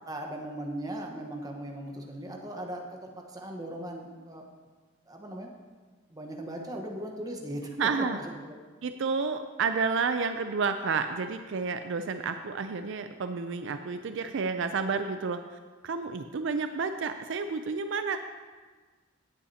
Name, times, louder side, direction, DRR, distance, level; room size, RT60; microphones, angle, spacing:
voice 1, 0.0-4.4 5.1-5.5 6.1-7.7 8.0-8.6, right 1 dB, 20° right, 1 dB, 1.1 m, -38 dB
voice 2, 7.8-8.2 8.8-15.6 15.8-18.2, right 5 dB, 60° right, 8 dB, 0.4 m, -30 dB
16.5 x 8.4 x 2.8 m, 1.4 s
head